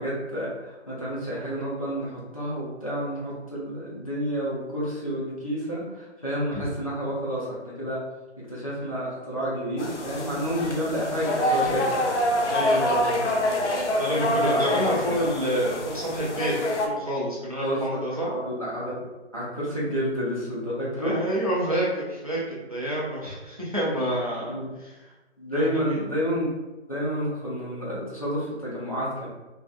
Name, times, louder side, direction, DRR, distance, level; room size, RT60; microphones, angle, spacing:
voice 1, 0.0-8.1 8.5-11.9 12.5-13.6 13.9-15.0 17.6-21.2 24.5-24.7 25.4-26.5 26.9-29.3, equal, 30° left, -7 dB, 0.5 m, -30 dB
sound 1, 9.8-16.9, left 1 dB, 80° left, 0.6 m, -26 dB
voice 2, 12.5-12.8 14.0-16.5 16.8-18.3 21.0-24.6 25.5-26.0, equal, 35° right, -6 dB, 0.4 m, -28 dB
2.4 x 2.3 x 2.4 m, 1.1 s
figure-of-eight pair, 160°, 35 cm